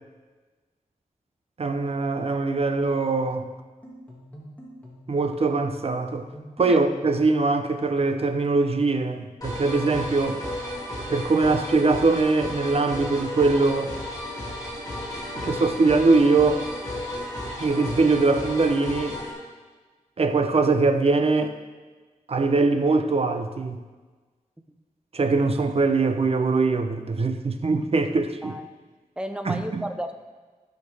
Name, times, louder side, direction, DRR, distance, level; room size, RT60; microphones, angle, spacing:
voice 1, 1.6-3.5 5.1-6.3 6.6-10.4 11.1-13.9 15.4-16.7 17.6-19.2 20.2-21.6 22.3-23.8 25.1-28.5 29.5-29.9, right 3 dB, 45° right, 8 dB, 0.6 m, -22 dB
sound 1, 3.3-7.2, equal, 10° left, 2.0 m, -45 dB
sound 2, 9.4-19.3, left 1 dB, 25° left, 2.5 m, -33 dB
voice 2, 29.2-30.1, equal, 5° right, 7 dB, 0.6 m, -32 dB
13.5 x 6.5 x 3.4 m, 1.4 s
wide cardioid pair, 115°, 14 cm